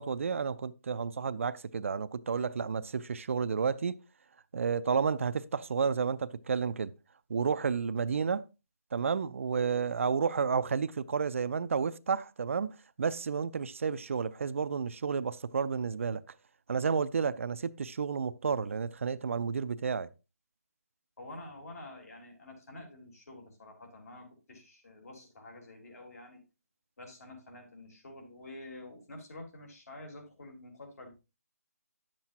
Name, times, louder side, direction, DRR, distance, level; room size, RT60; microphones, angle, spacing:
voice 1, 0.0-4.0 4.5-6.9 7.3-8.5 8.9-16.2 16.7-20.1, right 6 dB, 50° right, 0.4 m, -31 dB
voice 2, 21.2-26.4 27.0-31.2, left 2 dB, 65° left, 3.7 m, -48 dB
10.5 x 7.4 x 2.8 m
hypercardioid pair, 160°, 9 cm